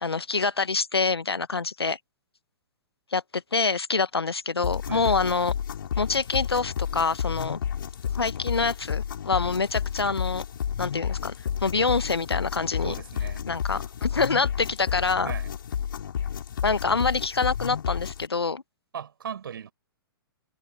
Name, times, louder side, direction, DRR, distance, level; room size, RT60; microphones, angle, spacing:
voice 1, 0.0-2.0 3.1-5.5 6.0-7.6 8.1-10.4 10.8-11.3 11.6-12.9 13.5-15.3 16.6-18.6, left 4 dB, 80° left, 1.2 m, -26 dB
sound 1, 4.6-18.3, left 8 dB, 60° left, 5.2 m, -31 dB
voice 2, 4.9-5.3 9.4-9.6 12.8-13.5 15.2-15.5 18.9-19.7, right 8 dB, 60° right, 5.4 m, -38 dB
figure-of-eight pair, 115°, 13 cm